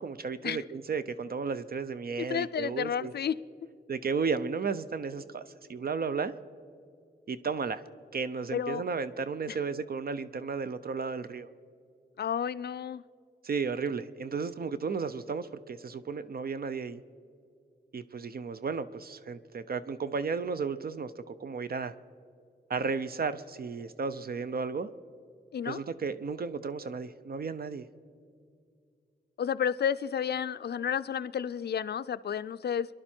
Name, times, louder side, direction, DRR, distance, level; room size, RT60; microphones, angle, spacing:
voice 1, 0.0-3.1 3.9-6.3 7.3-7.8 8.1-11.5 13.4-17.0 17.9-21.9 22.7-24.9 25.6-27.9, right 5 dB, 55° right, 0.5 m, -34 dB
voice 2, 2.3-3.4 8.5-8.9 9.5-9.6 12.2-13.0 25.5-25.8 29.4-32.9, left 8 dB, 65° left, 0.4 m, -31 dB
27.5 x 11.0 x 4.4 m
wide cardioid pair, 130°, 18 cm